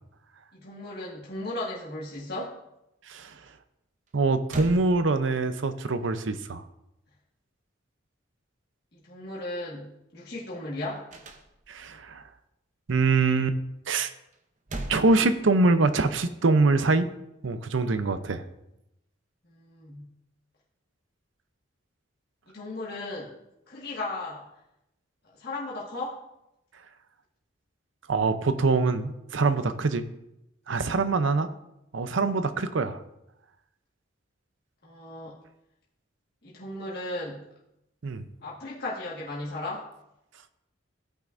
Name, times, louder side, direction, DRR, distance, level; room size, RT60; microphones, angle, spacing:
voice 1, 0.5-2.5 8.9-11.1 19.5-20.1 22.5-23.3 23.7-24.5 25.3-26.2 34.8-35.3 36.4-37.4 38.4-39.9, left 2 dB, 50° left, -6 dB, 1.6 m, -36 dB
sound 1, 4.1-4.2 4.5-5.6 11.1-12.0 14.3-15.9, right 2 dB, 40° right, 0.7 m, -40 dB
voice 2, 4.1-6.6 11.7-12.2 12.9-13.6 13.9-14.1 14.9-17.1 17.4-18.4 28.1-30.0 30.7-31.5 31.9-33.0 38.0-38.3, right 3 dB, 75° right, 11 dB, 0.6 m, -24 dB
15.5 x 5.7 x 2.6 m, 0.86 s
head